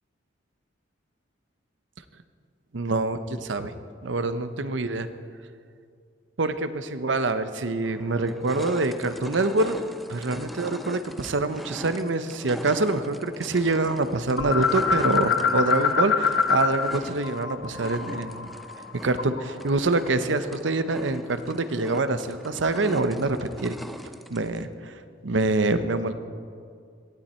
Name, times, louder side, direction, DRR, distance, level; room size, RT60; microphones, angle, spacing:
voice 1, 2.7-3.7 4.0-5.1 6.4-9.8 10.1-18.5 19.0-23.8 24.3-24.9 25.2-26.1, right 2 dB, 75° right, 11 dB, 0.8 m, -25 dB
sound 1, 7.2-7.3 7.8-24.7, equal, ahead, 0.5 m, -42 dB
sound 2, 14.4-17.0 17.2-19.5, left 5 dB, 65° left, 0.9 m, -25 dB
18.0 x 12.5 x 4.4 m, 2.3 s
head